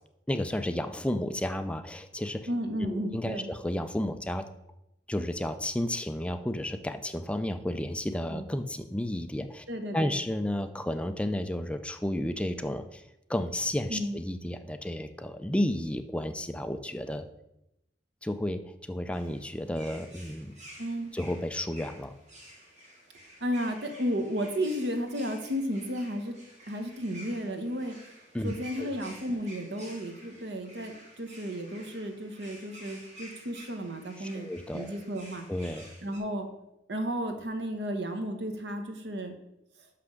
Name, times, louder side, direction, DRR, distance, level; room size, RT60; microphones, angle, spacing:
voice 1, 0.3-2.5 2.8-4.5 5.1-9.7 9.9-13.0 13.3-17.3 18.2-20.6 21.1-22.1 28.3-28.5 34.2-35.0 35.5-35.9, left 1 dB, 5° left, 8 dB, 0.4 m, -32 dB
voice 2, 2.5-3.5 8.3-8.4 9.7-10.1 13.9-14.2 20.8-21.1 23.4-26.3 26.7-28.0 28.4-34.5 34.7-35.5 36.0-36.5 36.9-39.3, equal, 75° right, 6 dB, 1.1 m, -33 dB
sound 1, 19.1-36.2, equal, 40° right, 2.1 m, -51 dB
6.0 x 5.9 x 6.4 m, 0.87 s
head